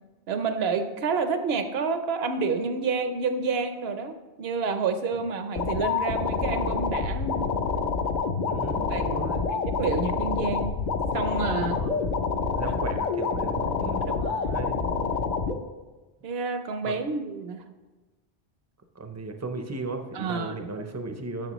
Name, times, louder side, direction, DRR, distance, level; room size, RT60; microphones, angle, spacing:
voice 1, 0.3-7.5 8.9-10.7 11.1-11.8 12.7-12.8 13.8-14.7 16.2-17.6 20.1-20.8, right 4 dB, 70° right, 8 dB, 0.9 m, -29 dB
sound 1, 5.6-15.6, left 5 dB, 50° left, 0.6 m, -27 dB
voice 2, 8.5-9.4 11.6-12.1 12.5-14.1 14.4-14.8 16.8-17.0 19.0-21.5, right 3 dB, 20° right, 6 dB, 0.4 m, -36 dB
10.5 x 6.5 x 3.0 m, 1.2 s
omnidirectional pair, 1.1 m